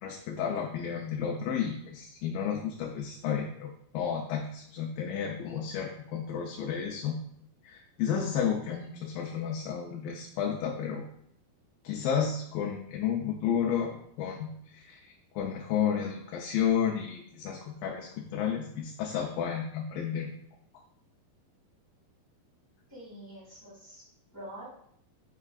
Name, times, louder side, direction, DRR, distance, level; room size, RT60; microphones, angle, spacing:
voice 1, 0.0-7.2 7.6-11.1 11.8-20.3, left 8 dB, 80° left, 1 dB, 2.3 m, -32 dB
voice 2, 22.9-24.0 24.3-24.7, right 1 dB, 10° right, -6 dB, 0.9 m, -45 dB
9.8 x 4.9 x 2.3 m, 0.67 s
omnidirectional pair, 4.4 m